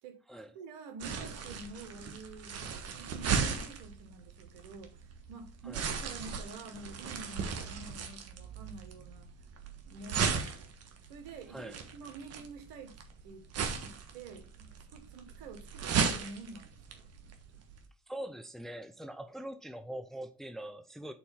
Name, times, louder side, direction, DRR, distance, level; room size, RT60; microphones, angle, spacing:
voice 1, 0.5-9.3 9.8-10.7 11.0-13.5 13.8-17.3, right 3 dB, 75° right, 1.6 m, -48 dB
sound 1, 1.0-17.8, right 6 dB, 50° right, 1.4 m, -37 dB
voice 2, 18.1-21.1, right 1 dB, ahead, 0.6 m, -43 dB
4.7 x 4.1 x 5.5 m
supercardioid pair, 95°, 32 cm